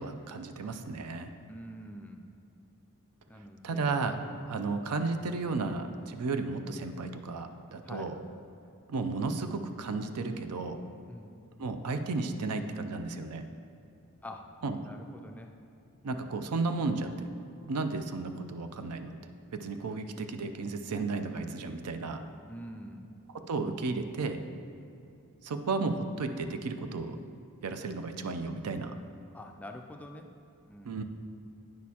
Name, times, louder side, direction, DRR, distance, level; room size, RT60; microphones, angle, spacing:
voice 1, 0.0-1.3 3.6-4.2 4.5-8.2 8.9-10.8 11.6-13.4 14.6-14.8 16.0-17.1 17.7-19.1 19.5-22.2 23.3-24.4 25.4-27.2 27.6-28.9 30.8-31.0, right 3 dB, 90° right, 8 dB, 0.5 m, -33 dB
voice 2, 1.5-2.2 3.3-3.9 4.5-4.8 7.8-8.1 11.1-11.4 14.2-15.5 22.5-23.0 29.3-30.3 30.7-31.0, equal, 5° left, 3 dB, 0.3 m, -46 dB
9.3 x 6.2 x 2.8 m, 2.7 s
head